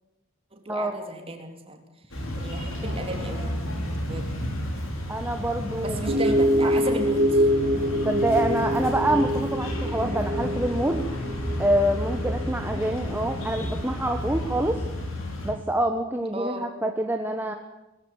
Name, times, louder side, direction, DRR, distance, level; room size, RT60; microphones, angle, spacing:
voice 1, 0.5-3.5 4.1-4.3 5.8-7.5 16.3-16.7, right 1 dB, 30° right, 4 dB, 3.6 m, -35 dB
sound 1, 2.1-15.5, left 1 dB, 70° left, 5.6 m, -32 dB
voice 2, 5.1-6.0 6.6-6.8 8.0-11.1 11.6-14.8 15.4-17.5, right 1 dB, 10° right, 4 dB, 1.3 m, -26 dB
sound 2, 6.1-13.8, equal, 50° right, 2.4 m, -26 dB
sound 3, 7.6-14.1, left 1 dB, 30° left, 3.5 m, -40 dB
20.5 x 15.5 x 9.7 m, 1.0 s
head